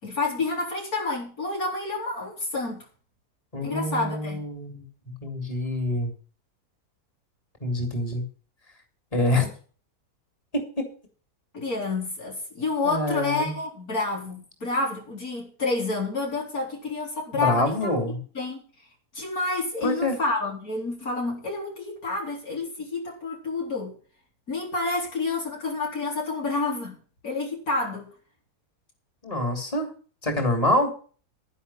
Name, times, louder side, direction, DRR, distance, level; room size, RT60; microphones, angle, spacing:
voice 1, 0.0-2.8 3.6-4.4 11.5-17.9 18.3-18.6 19.1-23.9 24.5-27.0 27.2-28.1, left 3 dB, 60° left, 4.5 m, -29 dB
voice 2, 3.5-4.9 5.2-6.1 7.6-8.2 9.1-9.5 10.5-10.9 12.8-13.5 17.3-18.2 19.8-20.1 29.2-29.9 30.2-30.9, left 1 dB, 20° left, 3.1 m, -26 dB
11.5 x 10.5 x 5.7 m
omnidirectional pair, 1.7 m